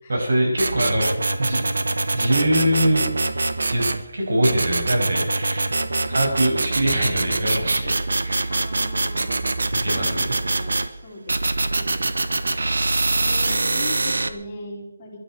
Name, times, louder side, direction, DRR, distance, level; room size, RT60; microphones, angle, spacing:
voice 1, 0.1-3.0 3.7-3.8 4.1-5.7 6.1-8.0 8.2-8.5 9.7-10.3, right 1 dB, 70° right, 0 dB, 6.8 m, -23 dB
sound 1, 0.6-4.0 4.4-10.9 11.3-14.3, right 2 dB, 90° right, 1.2 m, -24 dB
voice 2, 5.6-6.2 7.8-7.9 8.2-12.0 13.0-15.2, left 2 dB, 20° left, -5 dB, 3.6 m, -40 dB
22.0 x 12.5 x 4.6 m, 0.84 s
hypercardioid pair, 175°, 0 cm